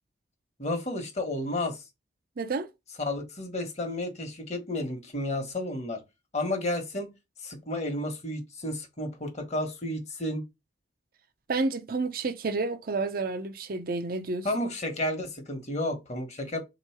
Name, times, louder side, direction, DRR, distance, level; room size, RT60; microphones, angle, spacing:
voice 1, 0.6-1.8 3.0-6.0 6.3-7.1 7.4-10.4 14.4-16.6, left 1 dB, 40° left, 1.1 m, -32 dB
voice 2, 2.4-2.7 11.5-14.5, right 3 dB, 55° right, 0.5 m, -30 dB
3.7 x 3.0 x 4.4 m
head